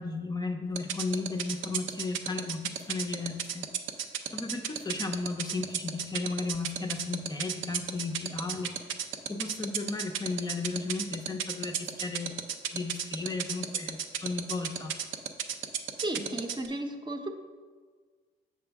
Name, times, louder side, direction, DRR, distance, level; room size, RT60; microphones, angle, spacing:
voice 1, 0.0-3.7 4.3-8.8 9.3-12.3 12.7-14.9, left 3 dB, 20° left, 3 dB, 0.5 m, -34 dB
sound 1, 0.8-16.7, right 9 dB, 80° right, 0.5 m, -31 dB
voice 2, 16.0-17.3, right 1 dB, 25° right, 4 dB, 0.7 m, -34 dB
6.9 x 6.1 x 3.4 m, 1.5 s
cardioid pair, 90°, 20 cm